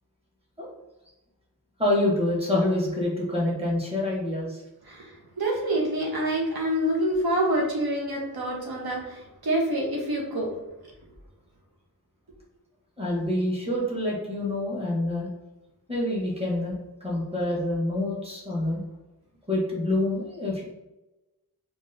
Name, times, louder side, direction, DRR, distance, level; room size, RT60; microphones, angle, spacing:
voice 1, 1.8-4.6 13.0-15.3 15.9-18.8 19.5-20.6, left 1 dB, 15° right, -4 dB, 1.1 m, -27 dB
voice 2, 4.8-10.5, right 1 dB, 70° right, -2 dB, 0.7 m, -27 dB
3.8 x 2.4 x 2.6 m, 1.0 s
wide cardioid pair, 75°, 38 cm